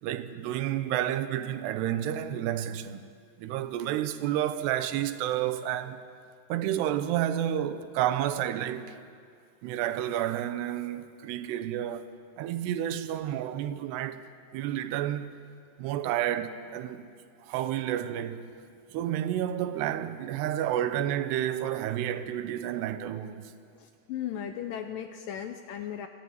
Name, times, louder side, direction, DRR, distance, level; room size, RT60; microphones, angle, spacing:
voice 1, 0.0-3.0 3.4-6.0 6.5-9.0 9.6-14.2 14.5-15.3 15.8-17.0 17.5-18.5 18.9-23.5, right 11 dB, 85° right, 2.9 m, -30 dB
voice 2, 23.8-26.1, left 9 dB, 80° left, 2.1 m, -36 dB
23.0 x 14.5 x 9.5 m
omnidirectional pair, 4.8 m